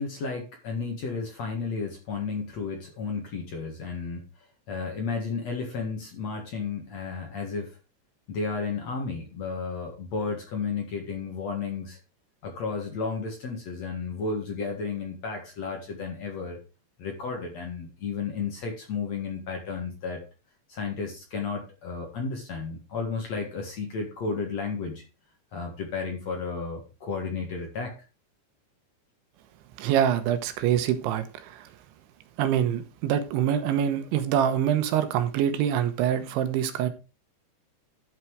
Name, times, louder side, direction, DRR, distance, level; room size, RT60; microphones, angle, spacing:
voice 1, 0.0-4.2 4.7-7.8 8.3-12.0 12.4-16.6 17.0-20.2 20.7-25.0 25.5-27.9, left 4 dB, 55° left, 2.2 m, -33 dB
voice 2, 29.8-31.7 32.4-36.9, right 10 dB, 90° right, 3.5 m, -25 dB
12.0 x 5.9 x 4.7 m
omnidirectional pair, 5.1 m